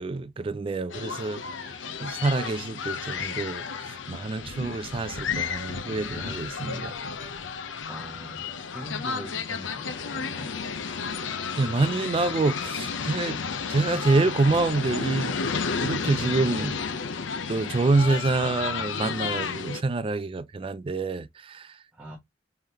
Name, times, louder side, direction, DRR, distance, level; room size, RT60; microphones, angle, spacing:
voice 1, 0.0-1.4 1.7-6.9 11.6-13.4 13.7-15.4 15.8-16.8 17.5-21.8, right 3 dB, 30° right, 0.3 m, -27 dB
sound 1, 0.9-19.8, left 5 dB, 90° left, 0.6 m, -32 dB
voice 2, 7.8-10.6 21.9-22.2, equal, 10° right, 1.1 m, -42 dB
3.7 x 3.3 x 2.8 m
head